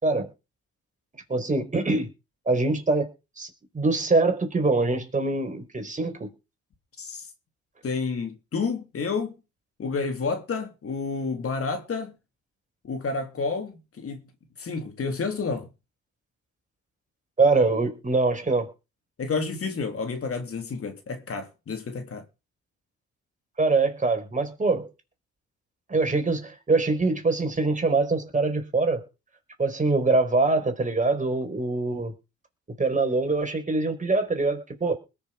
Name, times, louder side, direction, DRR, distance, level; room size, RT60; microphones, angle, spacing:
voice 1, 1.3-2.1 2.5-3.1 3.4-6.3 17.4-18.7 23.6-24.9 25.9-29.1 29.6-32.1 32.8-34.9, right 3 dB, 25° right, 4.8 m, -24 dB
voice 2, 7.8-9.3 9.8-12.1 12.8-14.2 14.6-15.7 19.2-22.2, left 4 dB, 50° left, 3.2 m, -30 dB
21.0 x 7.1 x 5.1 m
cardioid pair, 90°, 30 cm